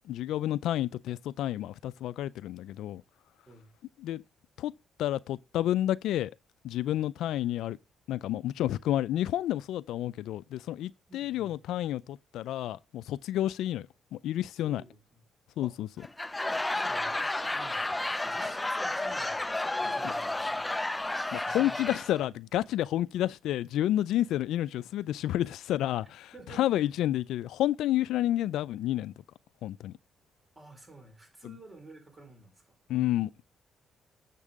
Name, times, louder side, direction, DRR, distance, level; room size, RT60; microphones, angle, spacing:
voice 1, 0.1-3.0 4.0-4.2 4.6-4.7 5.0-6.3 6.6-7.8 8.1-13.9 14.1-14.8 15.6-15.9 21.3-29.1 29.6-29.9 31.4-31.6 32.9-33.3, left 13 dB, 85° left, 0.3 m, -30 dB
voice 2, 11.1-11.6 14.6-15.3 15.6-15.8 16.7-17.2 17.5-17.9 18.2-20.7 21.4-22.4 26.0-26.9 30.6-32.8, right 2 dB, 25° right, 3.8 m, -52 dB
Laughter / Crowd, 16.0-22.2, left 2 dB, 10° left, 0.5 m, -32 dB
7.3 x 6.8 x 3.6 m
cardioid pair, 90°, 0 cm